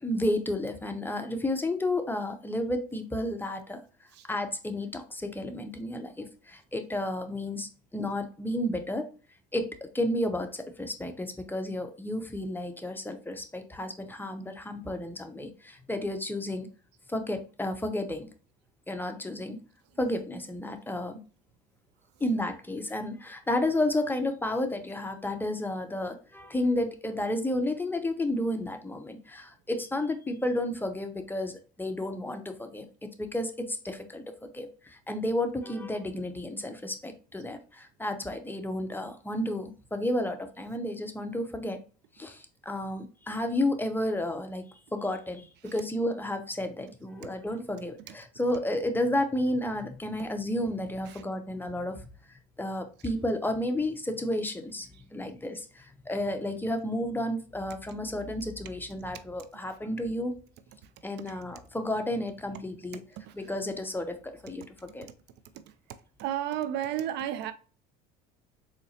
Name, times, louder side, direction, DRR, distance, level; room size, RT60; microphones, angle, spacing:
voice 1, 0.0-3.8 4.3-9.1 9.5-16.7 17.1-18.3 18.9-19.6 20.0-21.2 22.2-41.8 42.2-60.3 61.0-63.0 63.3-65.1, left 1 dB, 10° left, 0.6 m, -32 dB
voice 2, 63.2-63.5 65.5-67.5, right 11 dB, 55° right, 0.4 m, -35 dB
3.9 x 2.8 x 2.8 m
hypercardioid pair, 80°, 21 cm